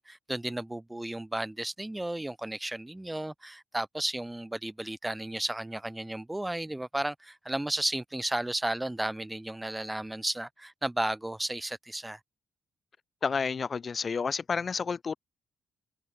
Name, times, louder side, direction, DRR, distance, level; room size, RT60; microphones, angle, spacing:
voice 1, 0.0-12.2, right 1 dB, 10° right, 1.5 m, -33 dB
voice 2, 13.2-15.2, left 5 dB, 40° left, 0.6 m, -30 dB
cardioid pair, 90°, 0 cm